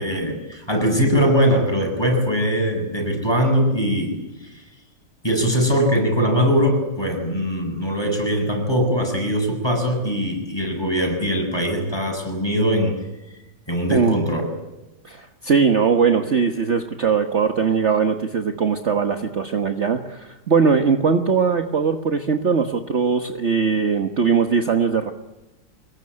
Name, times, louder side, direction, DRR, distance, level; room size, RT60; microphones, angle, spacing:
voice 1, 0.0-4.2 4.4-4.6 5.2-13.0 13.7-14.4, equal, 15° left, 2 dB, 7.5 m, -21 dB
voice 2, 13.9-14.2 15.0-25.1, right 5 dB, 45° right, 7 dB, 1.5 m, -20 dB
25.5 x 22.0 x 9.9 m, 1.0 s
omnidirectional pair, 1.9 m